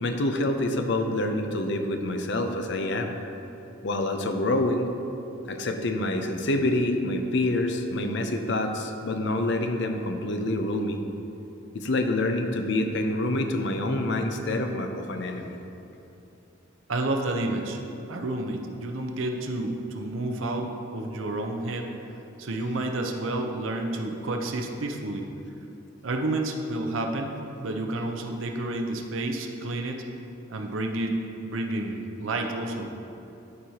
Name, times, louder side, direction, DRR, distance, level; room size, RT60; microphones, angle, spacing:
voice 1, 0.0-3.1 3.8-4.9 5.5-11.0 11.7-15.6, left 1 dB, 60° left, 5 dB, 0.5 m, -27 dB
voice 2, 16.9-17.8 18.1-21.9 22.4-25.3 26.0-30.0 30.5-31.2 31.5-32.9, right 2 dB, 75° right, 3 dB, 0.7 m, -30 dB
12.0 x 4.7 x 2.8 m, 2.9 s
head